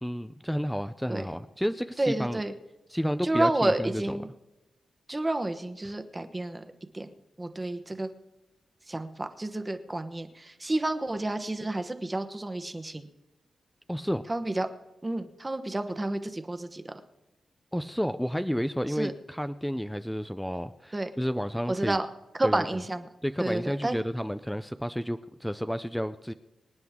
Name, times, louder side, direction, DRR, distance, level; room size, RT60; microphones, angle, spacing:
voice 1, 0.0-2.4 2.9-4.2 13.9-14.2 17.7-22.0 22.4-22.6 23.2-26.3, equal, ahead, 10 dB, 0.4 m, -31 dB
voice 2, 2.0-2.5 3.2-4.3 5.1-6.6 6.9-7.1 7.4-8.1 8.9-13.1 14.3-14.7 15.0-17.0 19.0-19.1 20.9-21.1 21.7-22.1 22.4-23.1 23.4-24.0, right 2 dB, 15° right, 8 dB, 1.0 m, -30 dB
25.5 x 9.7 x 3.6 m, 1.0 s
wide cardioid pair, 155°, 0 cm